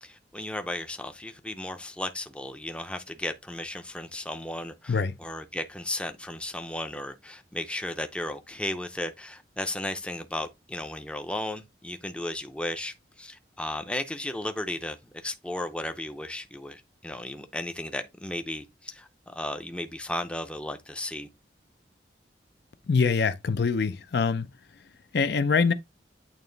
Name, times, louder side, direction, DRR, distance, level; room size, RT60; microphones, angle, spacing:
voice 1, 0.0-21.3, left 1 dB, 5° left, 0.5 m, -35 dB
voice 2, 22.9-24.5 25.1-25.7, left 5 dB, 60° left, 0.5 m, -24 dB
8.8 x 3.0 x 3.9 m
head